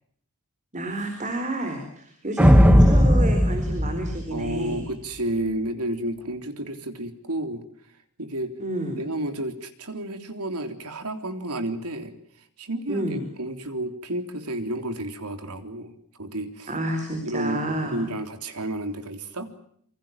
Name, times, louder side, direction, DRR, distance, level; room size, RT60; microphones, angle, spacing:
voice 1, 0.7-4.9 8.6-9.0 12.9-13.2 16.7-18.1, right 1 dB, 35° right, 6 dB, 4.4 m, -29 dB
sound 1, 2.4-4.9, equal, 5° right, 1.6 m, -17 dB
voice 2, 4.3-7.6 8.2-8.5 8.9-12.1 12.6-16.7 17.2-19.5, right 1 dB, 90° right, 8 dB, 3.6 m, -31 dB
27.5 x 24.5 x 7.5 m, 0.65 s
head